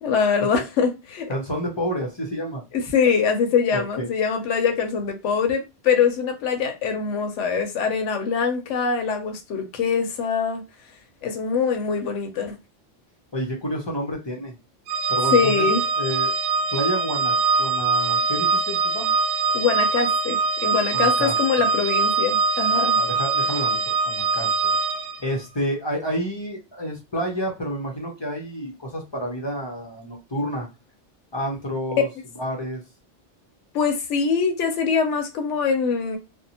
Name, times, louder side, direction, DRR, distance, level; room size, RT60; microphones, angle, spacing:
voice 1, 0.0-1.3 2.7-10.6 11.2-12.6 15.3-15.8 19.5-23.0 33.7-36.2, left 6 dB, 80° left, 1.0 m, -23 dB
voice 2, 1.3-2.6 3.7-4.1 13.3-14.5 15.1-15.7 16.0-16.3 16.7-19.1 20.9-21.7 23.0-24.5 25.2-30.7 31.3-32.1 32.4-32.8, equal, 35° left, 0.5 m, -29 dB
Organ, 14.9-25.3, right 4 dB, 80° right, 0.9 m, -23 dB
2.6 x 2.0 x 2.7 m
omnidirectional pair, 1.2 m